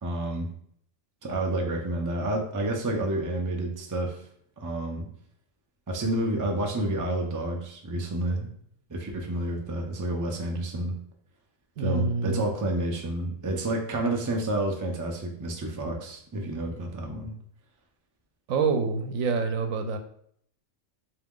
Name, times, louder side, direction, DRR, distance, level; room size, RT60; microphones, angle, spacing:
voice 1, 0.0-0.5 1.2-4.2 4.6-5.1 5.9-8.5 8.9-11.0 11.8-17.3, right 1 dB, 30° right, 1 dB, 0.3 m, -29 dB
voice 2, 11.8-12.4 18.5-20.0, right 4 dB, 90° right, 7 dB, 1.0 m, -26 dB
4.0 x 2.7 x 3.6 m, 0.64 s
omnidirectional pair, 1.4 m